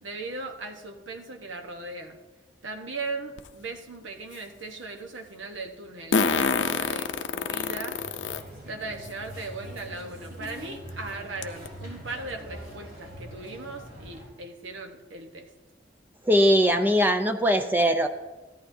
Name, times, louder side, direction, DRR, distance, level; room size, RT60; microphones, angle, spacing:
voice 1, 0.0-2.2 2.6-8.0 8.7-15.5, right 3 dB, 85° right, 4 dB, 1.1 m, -38 dB
Fart, 3.4-3.5 6.1-8.4 9.0-9.1 10.4-10.5 10.9-11.0 11.4-11.7, left 5 dB, 75° left, 0.5 m, -26 dB
sound 1, 7.9-14.3, equal, 50° right, 4.3 m, -43 dB
voice 2, 16.2-18.1, equal, 10° right, 7 dB, 0.4 m, -21 dB
14.0 x 11.5 x 2.7 m, 1.2 s
head